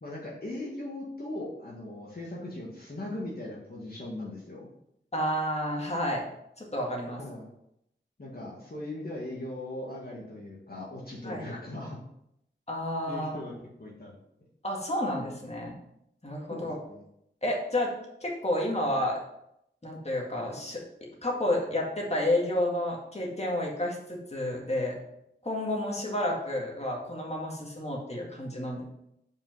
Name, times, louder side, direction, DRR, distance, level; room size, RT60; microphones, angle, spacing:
voice 1, 0.0-4.7 7.2-7.5 8.2-12.0 13.1-13.5 13.8-14.2 16.5-17.0, left 1 dB, 50° left, -4 dB, 1.6 m, -39 dB
voice 2, 5.1-6.3 6.6-7.2 11.2-11.5 12.7-13.4 14.6-15.7 16.2-16.7 17.4-17.9 18.2-19.2 19.8-20.8 21.2-25.0 25.4-28.8, left 1 dB, 35° left, -2 dB, 1.9 m, -30 dB
5.3 x 5.3 x 5.3 m, 0.78 s
wide cardioid pair, 55°, 20 cm